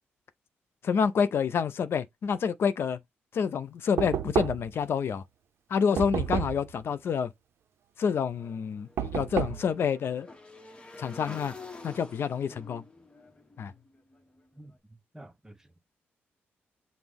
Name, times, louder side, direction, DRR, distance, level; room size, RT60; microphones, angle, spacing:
voice 1, 0.8-3.0 3.3-5.2 5.7-7.3 8.0-10.3 11.0-11.5 11.8-12.8 13.6-13.7, left 6 dB, 60° left, 0.4 m, -28 dB
Knock, 4.0-4.8 6.0-6.7 9.0-9.7, right 9 dB, 70° right, 0.5 m, -30 dB
Motorcycle / Engine, 8.3-14.5, left 3 dB, 20° left, 0.8 m, -48 dB
voice 2, 14.6-15.9, right 1 dB, 10° right, 0.7 m, -51 dB
5.9 x 2.0 x 3.5 m
cardioid pair, 90°, 4 cm